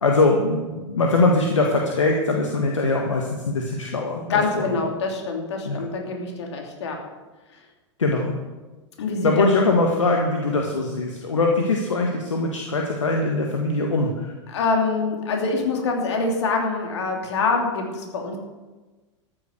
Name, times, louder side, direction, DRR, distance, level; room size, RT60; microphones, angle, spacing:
voice 1, 0.0-4.7 5.6-5.8 8.0-8.3 9.2-14.3, left 2 dB, 80° left, 1 dB, 1.6 m, -22 dB
voice 2, 4.3-7.0 9.0-9.5 14.5-18.4, left 4 dB, 65° left, 2 dB, 3.0 m, -25 dB
13.5 x 9.0 x 6.6 m, 1.2 s
figure-of-eight pair, 90°, 16 cm